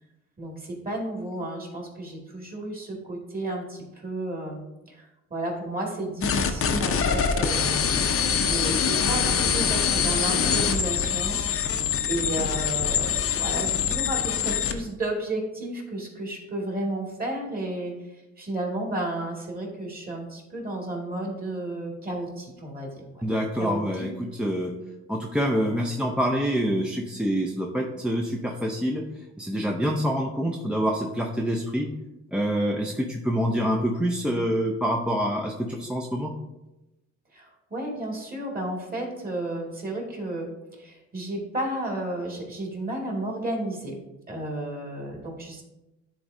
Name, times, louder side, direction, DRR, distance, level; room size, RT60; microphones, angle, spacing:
voice 1, 0.4-4.6 4.9-5.0 5.3-7.9 8.5-11.8 12.1-17.9 18.4-23.2 23.6-24.1 37.3-40.5 40.7-43.9 44.3-45.6, right 1 dB, 30° right, -1 dB, 2.2 m, -32 dB
sound 1, 6.2-14.8, left 7 dB, 50° left, 0.7 m, -24 dB
voice 2, 23.2-24.7 25.1-29.0 29.4-31.9 32.3-36.3, equal, 5° right, 0 dB, 0.6 m, -26 dB
10.5 x 3.9 x 2.7 m, 1.0 s
cardioid pair, 90°, 30 cm